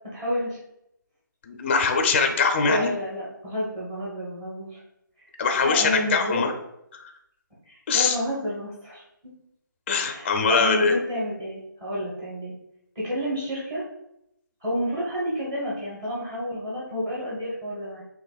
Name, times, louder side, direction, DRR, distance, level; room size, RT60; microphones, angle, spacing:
voice 1, 0.1-0.6 2.7-4.8 5.6-6.5 7.6-9.3 10.0-12.5 12.9-13.8 14.6-18.0, equal, 25° right, -7 dB, 1.3 m, -30 dB
voice 2, 1.4-2.9 5.4-6.5 6.9-7.1 7.9-8.2 9.9-11.0, left 4 dB, 30° left, 4 dB, 0.4 m, -22 dB
6.5 x 2.5 x 2.4 m, 0.81 s
figure-of-eight pair, 155°, 11 cm